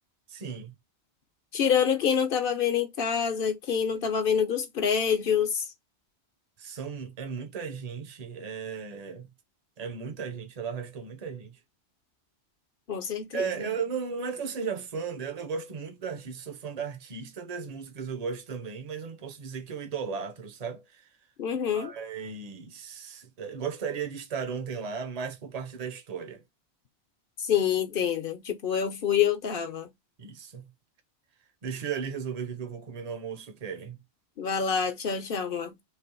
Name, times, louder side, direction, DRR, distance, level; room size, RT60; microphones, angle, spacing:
voice 1, 0.3-0.7 6.6-9.3 9.8-11.6 13.3-21.1 21.7-26.4 30.2-30.7 31.6-34.0, right 6 dB, 40° right, 0.8 m, -35 dB
voice 2, 1.5-5.7 12.9-13.7 21.4-21.9 27.4-29.9 34.4-35.8, left 8 dB, 60° left, 0.9 m, -27 dB
3.3 x 2.9 x 4.4 m
omnidirectional pair, 1.1 m